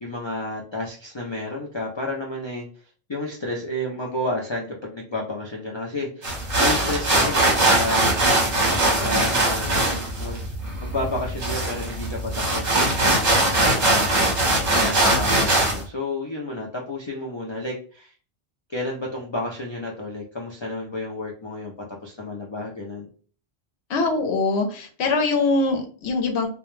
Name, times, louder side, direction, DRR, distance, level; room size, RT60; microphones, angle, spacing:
voice 1, 0.0-2.7 3.1-8.0 8.8-10.4 10.8-14.2 14.6-18.1 18.7-23.1, left 2 dB, 45° left, -1 dB, 0.3 m, -31 dB
sound 1, 6.2-15.8, right 1 dB, 45° right, 0.9 m, -21 dB
voice 2, 23.9-26.5, left 3 dB, 75° left, 4 dB, 0.9 m, -23 dB
2.2 x 2.1 x 3.0 m, 0.41 s
omnidirectional pair, 1.1 m